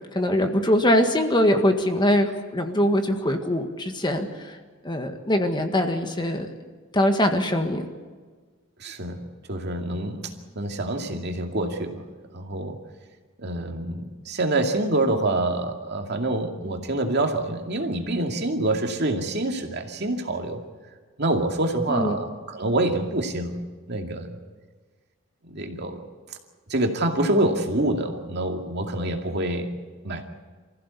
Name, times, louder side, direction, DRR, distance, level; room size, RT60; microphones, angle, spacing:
voice 1, 0.1-4.6 4.8-6.5 6.9-7.9 21.9-22.2, left 1 dB, 25° left, 5 dB, 1.7 m, -22 dB
voice 2, 8.8-12.0 12.3-12.8 13.4-20.6 21.2-23.6 23.9-24.4 25.4-26.0 26.7-29.7 30.0-30.2, right 2 dB, 55° right, 3 dB, 2.4 m, -26 dB
25.0 x 15.5 x 8.4 m, 1.5 s
head